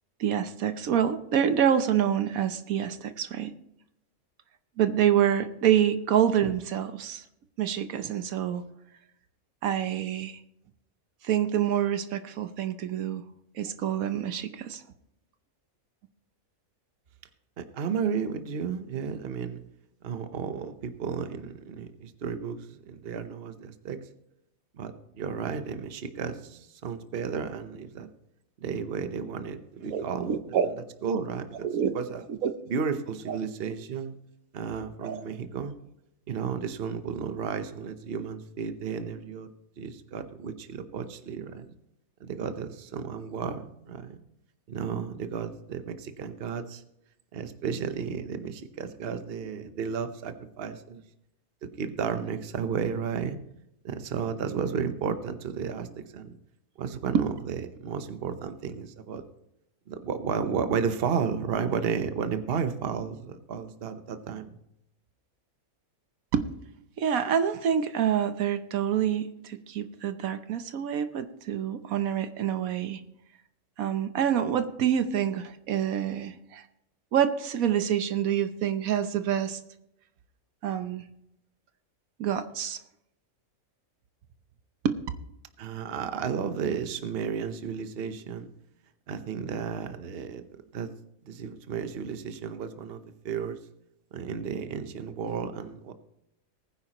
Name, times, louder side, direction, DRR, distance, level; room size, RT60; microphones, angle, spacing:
voice 1, 0.2-3.5 4.8-7.2 7.6-8.6 9.6-10.4 11.2-13.2 13.6-14.8 29.9-30.7 31.6-31.9 32.3-32.5 33.3-33.4 35.0-35.2 57.1-57.2 66.3-66.5 67.0-73.0 73.8-76.6 77.1-79.6 80.6-81.0 82.2-82.8 84.8-85.0, right 9 dB, 80° right, 10 dB, 1.2 m, -27 dB
voice 2, 17.6-19.6 20.0-24.0 24.8-28.1 28.6-30.4 30.7-30.8 31.0-31.7 31.9-32.2 32.7-34.1 34.5-35.8 36.3-39.5 39.8-41.7 42.2-44.2 44.7-46.8 47.3-51.0 51.8-53.4 53.8-56.3 56.8-59.2 59.9-64.6 85.6-88.5 89.1-90.4 90.7-90.9 91.3-93.6 94.1-95.9, right 6 dB, 50° right, 9 dB, 1.0 m, -33 dB
19.5 x 9.8 x 3.0 m, 0.80 s
omnidirectional pair, 1.5 m